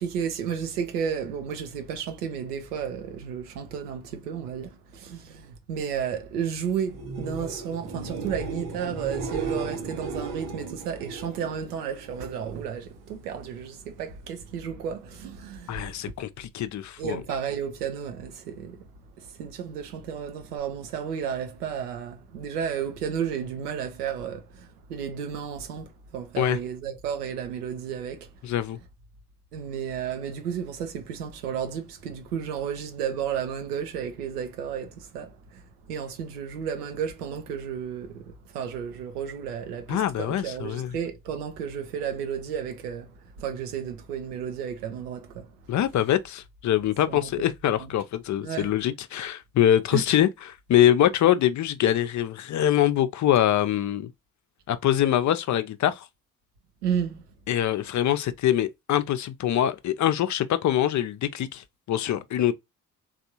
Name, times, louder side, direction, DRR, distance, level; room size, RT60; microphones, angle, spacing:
voice 1, 0.0-16.1 17.0-18.9 19.2-28.3 29.5-35.6 35.9-43.1 43.4-45.5 47.1-47.3 47.8-47.9 48.4-48.7 49.9-50.0 56.8-57.2, right 7 dB, 85° right, 0.7 m, -32 dB
sound 1, 6.9-12.6 13.0-13.5 20.6-20.7, right 4 dB, 65° right, 1.3 m, -35 dB
voice 2, 15.7-17.2 26.4-26.6 28.4-28.8 39.9-41.0 45.7-50.3 50.7-54.1 54.7-56.1 57.5-62.5, left 11 dB, 40° left, 0.5 m, -24 dB
3.4 x 2.4 x 2.7 m
hypercardioid pair, 45°, 45 cm